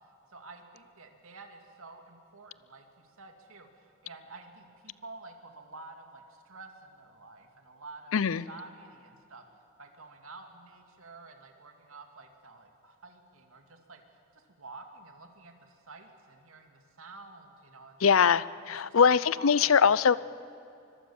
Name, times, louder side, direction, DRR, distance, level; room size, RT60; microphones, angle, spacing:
voice 1, 0.0-9.4 9.8-18.3 18.7-19.8, right 3 dB, 75° right, 4 dB, 2.4 m, -50 dB
voice 2, 8.1-8.4 18.0-18.4 18.7-20.2, left 6 dB, 70° left, 18 dB, 0.6 m, -22 dB
25.0 x 22.0 x 7.2 m, 2.7 s
head